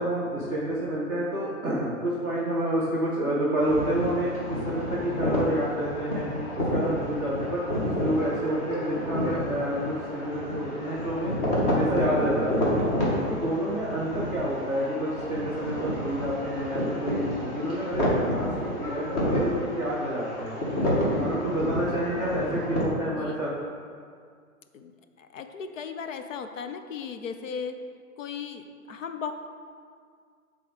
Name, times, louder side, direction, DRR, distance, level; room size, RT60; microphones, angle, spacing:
voice 1, 0.0-6.3 6.7-7.6 8.0-11.3 11.7-12.9 13.3-20.6 20.9-23.5, right 1 dB, 5° left, -8 dB, 0.4 m, -29 dB
sound 1, 3.6-22.8, equal, 30° left, 1.9 m, -29 dB
voice 2, 23.1-23.4 24.7-24.9 25.2-27.8 28.2-29.3, left 6 dB, 60° left, 7 dB, 0.8 m, -36 dB
8.0 x 3.8 x 6.7 m, 2.1 s
hypercardioid pair, 150°, 42 cm